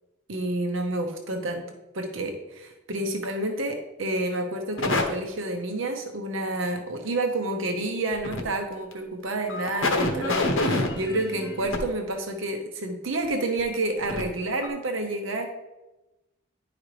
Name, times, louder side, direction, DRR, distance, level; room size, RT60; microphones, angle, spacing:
voice 1, 0.3-15.5, right 2 dB, 75° right, 4 dB, 0.9 m, -29 dB
sound 1, 4.8-5.0 8.1-8.4 8.9-9.0 9.5-11.8 13.6-13.7 14.0-14.2 14.6-14.7, left 2 dB, 80° left, 1.1 m, -26 dB
10.5 x 4.9 x 3.3 m, 1.0 s
head